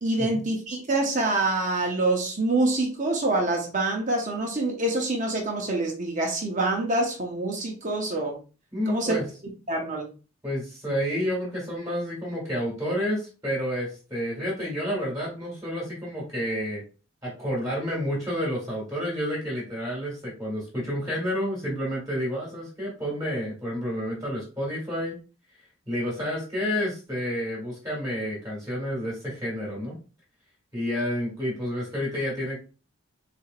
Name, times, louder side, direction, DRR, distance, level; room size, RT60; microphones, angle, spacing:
voice 1, 0.0-8.4 8.9-9.2 9.7-10.1, right 2 dB, 35° right, 0.8 m, -26 dB
voice 2, 8.7-9.3 10.4-16.8 17.2-25.1 25.9-30.0 30.7-32.6, equal, 15° right, 1.6 m, -30 dB
4.1 x 3.2 x 2.4 m
head